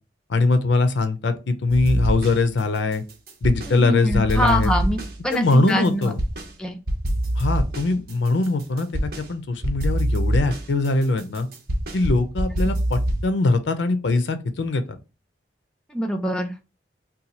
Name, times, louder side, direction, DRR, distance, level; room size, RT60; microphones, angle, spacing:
voice 1, 0.3-3.0 3.4-4.7 5.3-6.2 7.4-11.5 11.9-14.8, left 3 dB, 85° left, 0.5 m, -22 dB
sound 1, 1.7-2.6 2.9-3.8 4.1-6.5 6.9-9.3 9.6-13.3, right 1 dB, 55° right, 0.7 m, -25 dB
voice 2, 3.7-6.1 6.6-6.8 12.6-12.7 15.9-16.5, equal, 5° left, 0.4 m, -24 dB
2.7 x 2.3 x 4.1 m
head